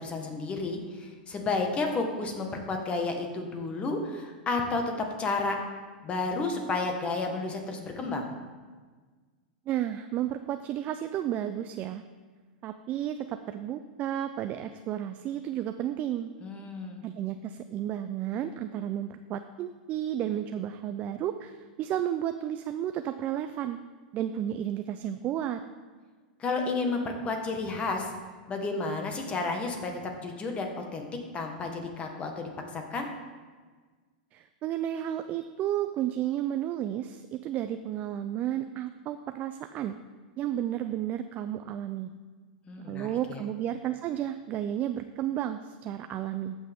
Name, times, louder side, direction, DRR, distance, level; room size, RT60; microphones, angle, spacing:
voice 1, 0.0-5.6 6.0-8.3 16.4-17.0 26.4-28.1 28.5-31.1 31.3-33.1 42.7-43.4, left 3 dB, 25° left, 3 dB, 1.5 m, -31 dB
voice 2, 9.7-12.0 12.6-16.3 17.0-23.8 24.1-25.6 34.3-40.0 40.4-42.1 42.8-46.6, right 11 dB, 35° right, 9 dB, 0.4 m, -32 dB
15.0 x 6.2 x 3.6 m, 1.4 s
hypercardioid pair, 125°, 5 cm